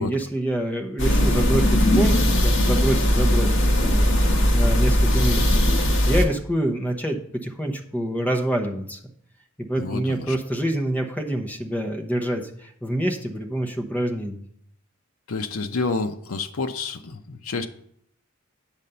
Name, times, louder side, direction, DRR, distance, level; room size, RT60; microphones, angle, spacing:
voice 1, 0.0-2.2 2.4-9.0 9.6-14.4, right 1 dB, 5° left, 3 dB, 0.9 m, -27 dB
sound 1, 1.0-6.2, equal, 60° left, 1.2 m, -19 dB
voice 2, 9.8-10.4 15.3-17.7, left 3 dB, 80° left, 5 dB, 0.6 m, -29 dB
8.9 x 4.1 x 6.8 m, 0.68 s
head